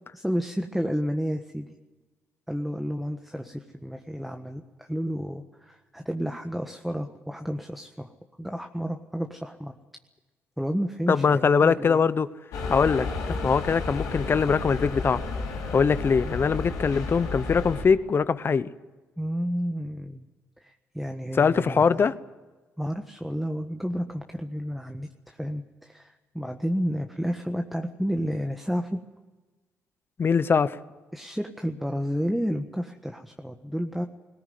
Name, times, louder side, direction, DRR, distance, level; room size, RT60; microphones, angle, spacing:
voice 1, 0.1-1.7 2.5-8.1 8.4-9.7 10.6-12.0 19.2-20.3 20.6-22.1 22.8-29.0 31.1-34.1, equal, ahead, 5 dB, 1.4 m, -31 dB
voice 2, 11.1-12.3 12.7-15.2 15.7-18.7 21.4-22.1 30.2-30.8, left 5 dB, 40° left, 16 dB, 1.0 m, -22 dB
sound 1, 12.5-17.8, left 3 dB, 85° left, 5.1 m, -32 dB
19.5 x 17.5 x 9.5 m, 1.2 s
supercardioid pair, 70°, 6 cm